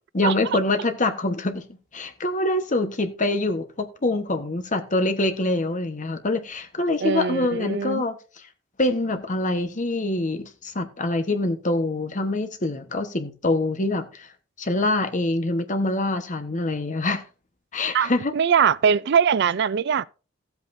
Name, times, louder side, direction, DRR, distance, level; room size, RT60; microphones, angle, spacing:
voice 1, 0.1-1.6 1.9-8.2 8.8-14.3 14.6-17.2 17.7-18.4, left 2 dB, 40° left, 1.2 m, -25 dB
voice 2, 7.0-8.0 17.9-20.1, right 7 dB, 60° right, 0.4 m, -21 dB
15.0 x 8.2 x 2.7 m
head